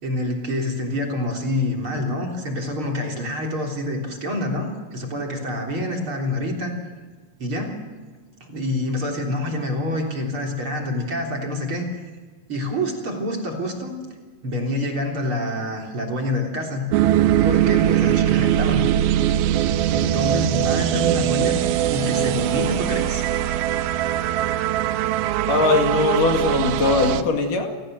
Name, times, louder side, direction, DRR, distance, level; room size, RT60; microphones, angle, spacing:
voice 1, 0.0-6.8 7.4-7.8 8.4-11.9 12.5-14.0 14.4-16.8 17.4-18.8 19.9-21.6 21.9-23.2, left 1 dB, 35° right, 1 dB, 4.1 m, -27 dB
sound 1, 16.9-27.2, right 11 dB, 90° right, 2.9 m, -21 dB
voice 2, 25.5-27.8, left 3 dB, 65° left, 4 dB, 3.7 m, -20 dB
30.0 x 18.0 x 7.8 m, 1.5 s
omnidirectional pair, 4.2 m